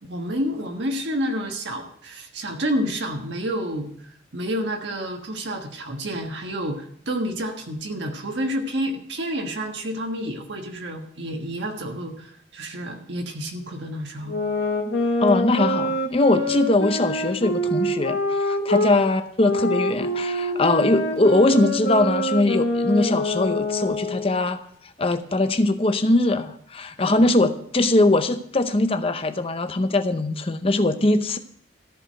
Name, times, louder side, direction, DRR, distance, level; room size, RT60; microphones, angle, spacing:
voice 1, 0.0-3.9 4.3-14.4 18.7-18.8 27.0-27.2, equal, 70° right, 3 dB, 1.4 m, -29 dB
sound 1, 14.3-18.9 19.4-24.4, left 1 dB, 70° left, 1.7 m, -25 dB
voice 2, 15.2-24.6 25.0-31.4, left 2 dB, 30° left, 9 dB, 0.7 m, -21 dB
13.5 x 4.9 x 7.6 m, 0.67 s
head